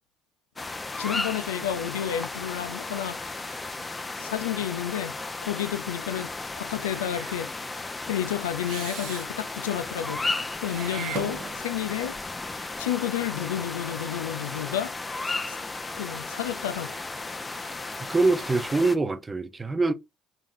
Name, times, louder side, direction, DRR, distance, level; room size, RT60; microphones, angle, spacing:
sound 1, 0.6-19.0, left 3 dB, 25° left, 0.7 m, -34 dB
voice 1, 1.0-3.4 4.2-5.1 5.4-7.5 8.1-12.2 12.5-15.0 15.2-15.6 16.0-17.0, left 10 dB, 85° left, 0.4 m, -31 dB
Meow / Hiss, 6.8-7.4 8.6-9.3 10.6-11.8, right 7 dB, 70° right, 1.0 m, -38 dB
voice 2, 18.1-19.9, right 3 dB, 25° right, 0.7 m, -24 dB
3.9 x 3.5 x 2.6 m
hypercardioid pair, 60°, 0 cm